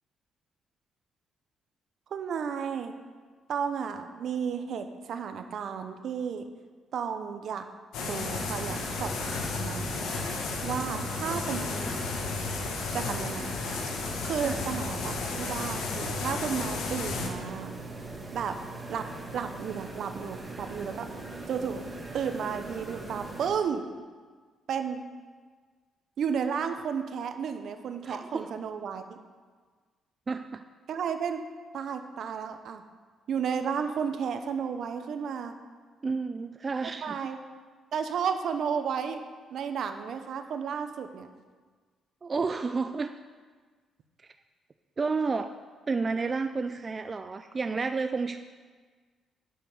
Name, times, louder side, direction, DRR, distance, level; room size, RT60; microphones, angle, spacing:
voice 1, 2.1-2.9 3.5-6.5 6.9-7.7 8.0-10.0 10.6-12.2 12.9-13.6 14.2-17.8 18.3-18.5 18.9-19.1 19.3-21.1 21.5-21.8 22.1-23.8 24.7-25.0 26.2-29.2 30.9-31.4 31.7-32.8 33.3-35.5 37.0-37.4 37.9-39.2 39.5-41.3, right 7 dB, 65° right, 8 dB, 0.8 m, -33 dB
sound 1, 7.9-17.3, left 4 dB, 85° left, 1.3 m, -33 dB
sound 2, 8.4-23.5, right 2 dB, 20° right, 2.3 m, -41 dB
voice 2, 28.0-28.5 30.3-30.6 36.0-37.2 42.2-43.1 45.0-45.5 45.9-48.4, right 4 dB, 35° right, 8 dB, 0.4 m, -31 dB
8.7 x 6.8 x 5.4 m, 1.5 s
cardioid pair, 90°, 0 cm